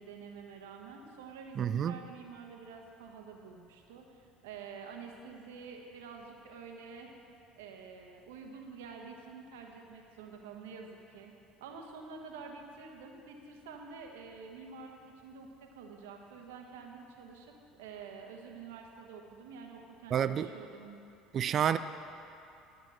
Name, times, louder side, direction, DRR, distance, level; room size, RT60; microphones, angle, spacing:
voice 1, 0.0-7.1 7.6-11.3 11.6-21.0, right 5 dB, 80° right, 2 dB, 1.2 m, -48 dB
voice 2, 1.6-2.0 20.1-20.5 21.3-21.8, right 9 dB, 50° right, 13 dB, 0.4 m, -29 dB
12.0 x 6.2 x 6.4 m, 2.7 s
hypercardioid pair, 70°, 0 cm